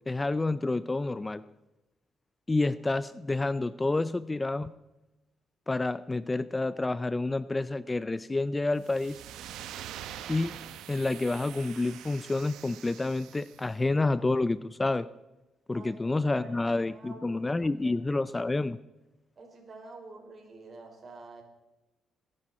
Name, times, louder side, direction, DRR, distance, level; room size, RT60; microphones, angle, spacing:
voice 1, 0.1-1.4 2.5-4.7 5.7-9.2 10.3-10.6 10.9-15.1 15.7-18.8, left 2 dB, 20° left, 16 dB, 0.4 m, -29 dB
sound 1, 8.8-13.7, right 11 dB, 90° right, 0.9 m, -44 dB
voice 2, 15.7-18.0 19.4-21.4, right 3 dB, 45° right, 2 dB, 4.7 m, -49 dB
20.5 x 11.0 x 4.3 m, 1.0 s
cardioid pair, 90°, 0 cm